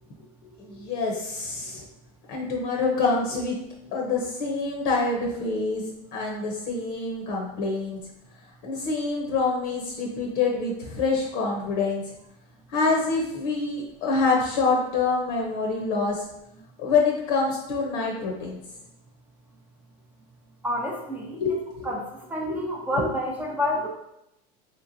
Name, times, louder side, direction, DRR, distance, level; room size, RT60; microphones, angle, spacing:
voice 1, 0.6-1.8 2.3-3.6 3.9-5.8 6.1-8.0 8.6-12.0 12.7-16.3 16.8-18.6 21.3-21.9 22.5-22.7 22.9-23.1, left 4 dB, 65° left, -1 dB, 0.7 m, -26 dB
voice 2, 20.6-21.4 21.8-22.0 22.3-23.9, left 1 dB, 10° right, -2 dB, 0.4 m, -28 dB
3.3 x 3.0 x 2.6 m, 0.84 s
supercardioid pair, 140°, 19 cm